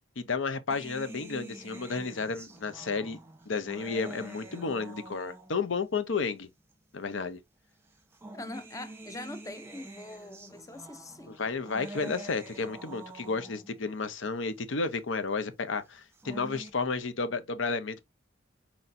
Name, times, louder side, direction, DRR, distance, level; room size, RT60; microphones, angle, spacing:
voice 1, 0.2-3.2 3.5-6.5 6.9-7.4 11.3-18.0, left 4 dB, 80° left, 0.7 m, -32 dB
sound 1, 0.7-5.8 6.7-6.8 7.9-13.8 15.9-16.7, right 2 dB, 15° right, 0.9 m, -46 dB
voice 2, 8.3-11.4, left 2 dB, 15° left, 0.5 m, -43 dB
4.5 x 4.2 x 2.6 m
head